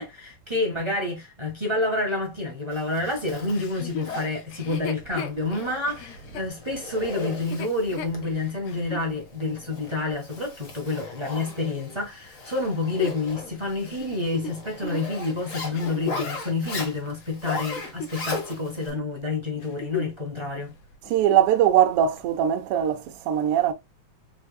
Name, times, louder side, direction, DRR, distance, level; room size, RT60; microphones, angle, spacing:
voice 1, 0.0-20.7, left 2 dB, 45° right, 0.3 m, -29 dB
Zipper (clothing), 2.7-18.9, left 3 dB, 45° left, 1.1 m, -38 dB
Chuckle chortle, 3.5-9.1 9.7-9.8 12.5-16.4 17.1-18.5 18.8-19.1 19.5-20.3 20.6-20.7 21.1-21.5 22.2-22.3, left 6 dB, 90° left, 2.2 m, -36 dB
voice 2, 21.1-23.7, right 10 dB, 70° right, 1.5 m, -21 dB
4.7 x 4.2 x 2.3 m
omnidirectional pair, 3.3 m